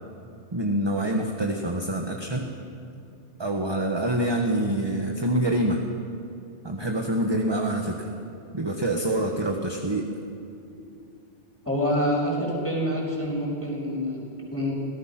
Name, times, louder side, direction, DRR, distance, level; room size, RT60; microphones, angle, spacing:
voice 1, 0.5-2.5 3.4-5.8 6.6-8.1 8.5-10.1, right 1 dB, 20° right, 2 dB, 1.3 m, -26 dB
voice 2, 11.6-14.7, equal, 10° left, -3 dB, 6.2 m, -27 dB
26.0 x 18.0 x 6.0 m, 2.5 s
omnidirectional pair, 1.2 m